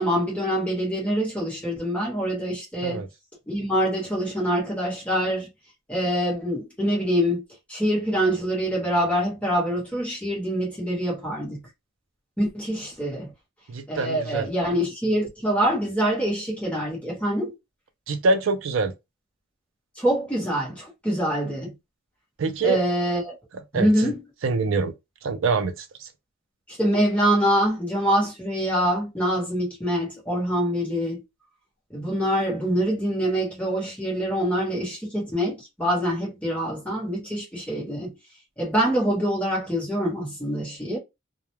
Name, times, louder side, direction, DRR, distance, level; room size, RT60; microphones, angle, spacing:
voice 1, 0.0-3.0 3.5-5.5 5.9-7.4 7.7-11.6 12.4-13.3 13.9-17.5 20.0-21.7 22.6-23.3 23.7-24.2 26.7-31.2 31.9-38.1 38.6-41.0, equal, 5° left, 1.0 m, -25 dB
voice 2, 13.7-14.5 18.1-18.9 22.4-22.8 23.7-24.1 24.4-24.9 25.2-26.1, right 3 dB, 70° right, 0.4 m, -25 dB
2.2 x 2.1 x 3.0 m
head